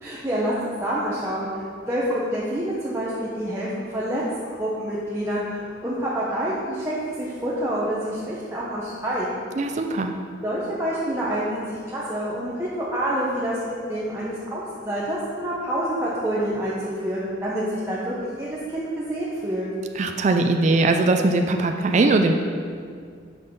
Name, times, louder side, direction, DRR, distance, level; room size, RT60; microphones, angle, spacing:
voice 1, 0.0-4.2 4.6-9.3 10.4-19.7, right 1 dB, 15° right, -8 dB, 0.8 m, -27 dB
voice 2, 9.6-10.1 20.0-22.3, right 2 dB, 40° right, 5 dB, 0.4 m, -20 dB
6.2 x 5.5 x 5.2 m, 2.1 s
head